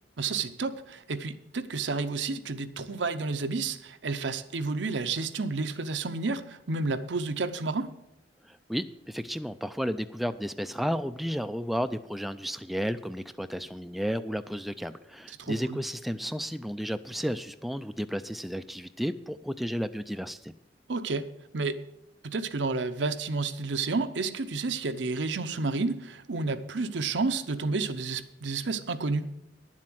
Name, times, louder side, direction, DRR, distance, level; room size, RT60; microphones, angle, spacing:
voice 1, 0.2-7.9 15.4-15.8 20.9-21.3 21.5-21.8 22.2-29.2, right 3 dB, 80° right, 10 dB, 0.8 m, -30 dB
voice 2, 8.5-20.5, equal, ahead, 10 dB, 0.3 m, -33 dB
10.5 x 7.4 x 7.7 m, 0.84 s
head